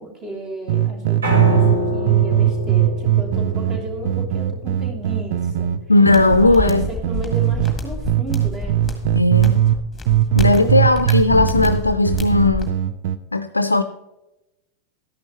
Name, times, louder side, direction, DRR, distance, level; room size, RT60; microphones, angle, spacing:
voice 1, 0.0-5.7 6.4-8.8 10.3-10.8, right 1 dB, 25° right, 1 dB, 3.0 m, -34 dB
sound 1, 0.7-7.8 8.1-9.8 10.1-13.2, right 12 dB, 50° right, 0.6 m, -19 dB
Piano, 1.2-7.4, equal, 70° right, 4.1 m, -27 dB
voice 2, 5.9-6.9 9.1-9.6 10.4-12.7 13.3-13.8, left 2 dB, 80° left, 11 dB, 0.4 m, -16 dB
sound 2, 6.1-12.7, left 2 dB, 10° left, 1.8 m, -29 dB
12.5 x 10.5 x 3.0 m, 0.98 s
figure-of-eight pair, 90°, 0 cm